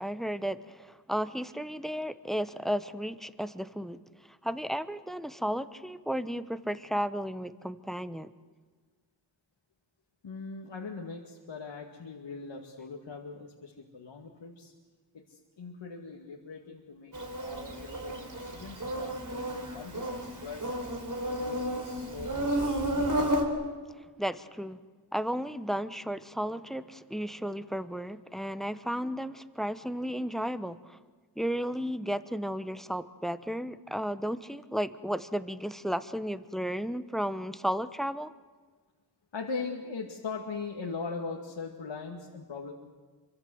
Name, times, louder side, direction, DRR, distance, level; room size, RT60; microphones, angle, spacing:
voice 1, 0.0-4.0 4.4-8.3 24.2-24.8 25.1-31.0 31.4-38.3, equal, ahead, 13 dB, 1.1 m, -33 dB
voice 2, 10.2-14.7 15.1-17.1 17.4-20.7 21.2-23.3 39.3-42.7, left 4 dB, 85° left, 0 dB, 2.3 m, -40 dB
Insect, 17.1-23.4, right 1 dB, 45° right, 4.3 m, -32 dB
27.0 x 25.0 x 7.9 m, 1.4 s
wide cardioid pair, 95°, 43 cm